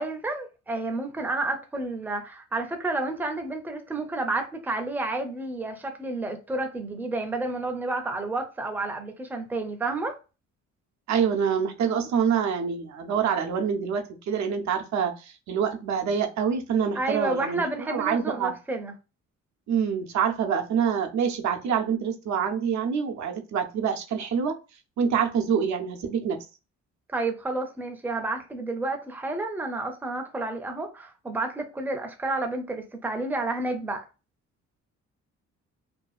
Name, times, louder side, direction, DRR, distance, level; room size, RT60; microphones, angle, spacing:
voice 1, 0.0-10.2 16.9-18.9 27.1-34.1, right 2 dB, 5° right, 0.5 m, -30 dB
voice 2, 11.1-17.6 17.9-18.5 19.7-24.5 25.0-26.4, right 7 dB, 65° right, 0.6 m, -26 dB
2.7 x 2.2 x 2.3 m
cardioid pair, 90°, 30 cm